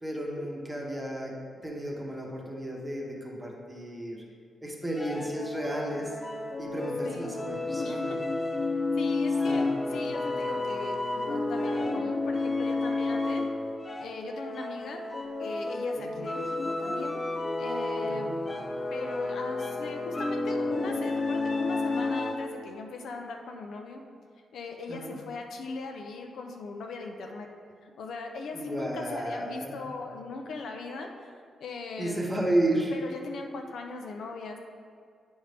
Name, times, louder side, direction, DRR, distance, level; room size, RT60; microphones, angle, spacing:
voice 1, 0.0-4.2 4.6-6.1 6.6-8.2 9.4-10.0 16.0-16.3 18.0-18.3 24.9-25.2 28.5-29.8 32.0-32.9, right 1 dB, 10° right, -1 dB, 1.0 m, -33 dB
sound 1, 4.9-22.6, left 2 dB, 20° left, 0.4 m, -31 dB
voice 2, 7.0-7.4 7.8-8.0 9.0-13.4 14.0-15.0 15.4-17.2 17.6-18.3 18.9-24.0 24.5-27.5 27.8-31.3 31.6-32.3 32.9-34.6, left 3 dB, 70° left, 3 dB, 0.6 m, -39 dB
8.8 x 5.3 x 3.4 m, 2.2 s
wide cardioid pair, 145°, 0 cm